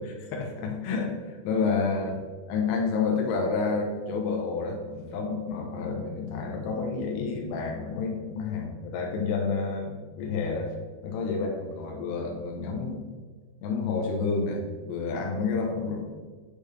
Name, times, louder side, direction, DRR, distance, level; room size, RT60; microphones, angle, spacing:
voice 1, 0.0-2.2 2.5-10.7 11.0-13.0 13.6-16.3, left 4 dB, 85° left, 1 dB, 3.8 m, -29 dB
10.0 x 6.6 x 3.4 m, 1.5 s
omnidirectional pair, 5.6 m